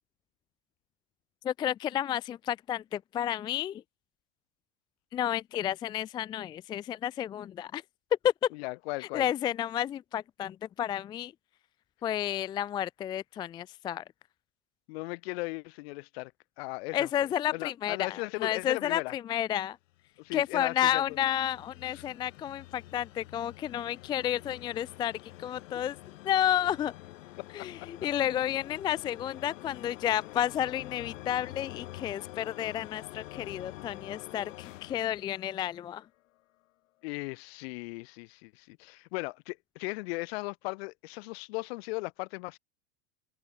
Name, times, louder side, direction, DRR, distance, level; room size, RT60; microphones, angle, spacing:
voice 1, 1.4-3.8 5.1-7.8 8.2-8.3 9.1-11.3 12.0-14.0 16.9-19.8 20.3-26.0 26.2-26.9 27.5-36.0, left 11 dB, 10° left, 0.5 m, -31 dB
voice 2, 8.5-9.3 14.9-16.3 16.6-19.1 20.2-21.2 21.8-22.1 27.4-27.5 28.2-28.5 37.0-42.6, left 25 dB, 50° left, 2.1 m, -37 dB
sound 1, 19.9-36.1, left 17 dB, 65° left, 5.8 m, -47 dB
supercardioid pair, 170°, 40 cm